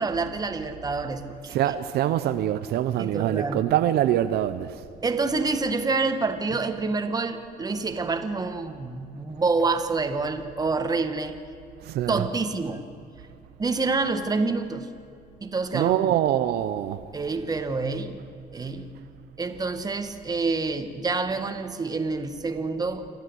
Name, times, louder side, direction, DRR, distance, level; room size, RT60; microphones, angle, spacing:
voice 1, 0.0-1.7 3.0-3.7 5.0-11.4 12.1-12.9 13.6-14.9 15.4-16.2 17.1-18.2 18.5-18.9 19.4-23.1, right 3 dB, 20° right, 1.6 m, -27 dB
voice 2, 1.5-4.8 11.8-12.2 15.7-17.0, right 12 dB, 75° right, 0.7 m, -24 dB
27.5 x 13.0 x 8.0 m
cardioid pair, 110°, 17 cm